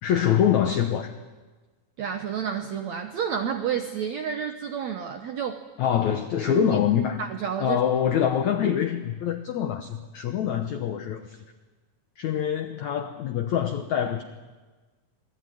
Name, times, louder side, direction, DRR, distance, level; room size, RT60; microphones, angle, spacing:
voice 1, 0.0-1.1 5.8-7.2 7.6-11.4 12.2-14.2, left 9 dB, 80° left, 7 dB, 1.6 m, -25 dB
voice 2, 2.0-5.6 6.6-6.7 7.2-7.8, right 7 dB, 80° right, 6 dB, 1.6 m, -30 dB
26.5 x 19.5 x 9.3 m, 1.3 s
omnidirectional pair, 4.8 m